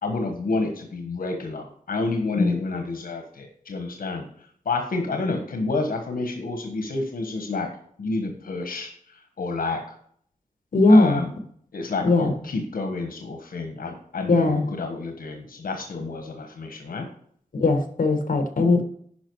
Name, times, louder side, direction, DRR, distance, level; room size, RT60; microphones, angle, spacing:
voice 1, 0.0-7.7 8.0-10.0 10.9-11.3 11.7-17.1, left 3 dB, 90° left, 5 dB, 1.3 m, -29 dB
voice 2, 10.7-11.2 12.0-12.3 14.3-14.7 17.5-18.8, left 2 dB, 70° left, 6 dB, 1.5 m, -19 dB
10.0 x 5.5 x 4.7 m, 0.62 s
wide cardioid pair, 120°, 14 cm